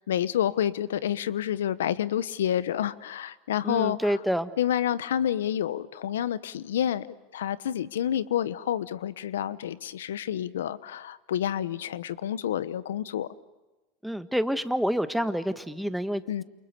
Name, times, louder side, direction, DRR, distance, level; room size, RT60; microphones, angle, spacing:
voice 1, 0.0-4.1 4.6-13.3 16.3-16.4, left 10 dB, 80° left, 17 dB, 1.0 m, -29 dB
voice 2, 3.6-4.5 14.0-16.2, equal, ahead, 10 dB, 1.6 m, -28 dB
29.0 x 28.5 x 6.8 m, 1.1 s
hypercardioid pair, 95°, 0 cm